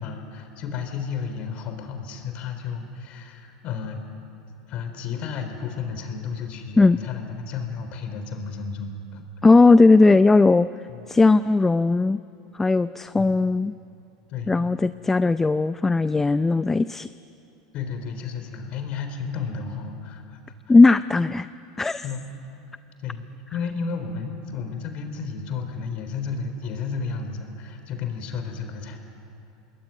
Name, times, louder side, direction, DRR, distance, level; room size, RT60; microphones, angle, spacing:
voice 1, 0.0-4.0 4.7-9.2 10.9-11.0 13.2-13.4 14.3-14.6 17.7-20.4 22.0-22.3 23.0-23.2 23.5-29.0, left 5 dB, 50° left, 6 dB, 4.1 m, -32 dB
voice 2, 9.4-10.7 11.1-12.2 12.6-13.8 14.5-17.1 20.7-21.5 21.8-22.0, left 3 dB, 15° left, 13 dB, 0.5 m, -17 dB
26.5 x 20.5 x 9.5 m, 2.7 s
hypercardioid pair, 100°, 3 cm